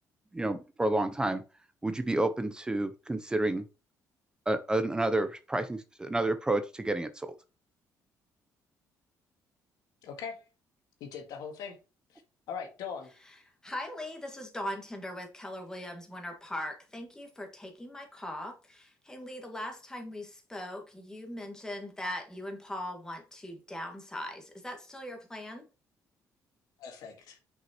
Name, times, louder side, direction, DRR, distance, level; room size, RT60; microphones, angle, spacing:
voice 1, 0.3-1.4 1.8-3.7 4.5-7.3, right 2 dB, 10° right, 0.5 m, -30 dB
voice 2, 10.0-10.4 11.0-11.8 12.1-12.2 12.5-13.1 26.8-27.4, left 6 dB, 85° left, 1.7 m, -40 dB
voice 3, 13.6-25.6, left 1 dB, 10° left, 1.7 m, -40 dB
6.2 x 5.4 x 2.9 m
cardioid pair, 125°, 6 cm